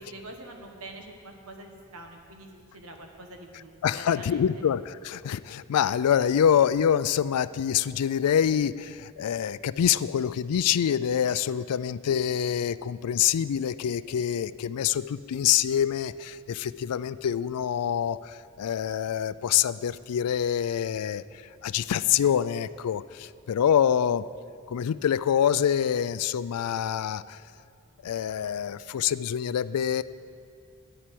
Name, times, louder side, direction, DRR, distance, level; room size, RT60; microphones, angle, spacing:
voice 1, 0.0-4.6, right 1 dB, 70° right, 3 dB, 1.4 m, -45 dB
voice 2, 3.8-24.3 24.7-27.4 28.0-30.0, left 9 dB, 85° left, 17 dB, 0.4 m, -26 dB
10.0 x 7.6 x 8.5 m, 2.3 s
head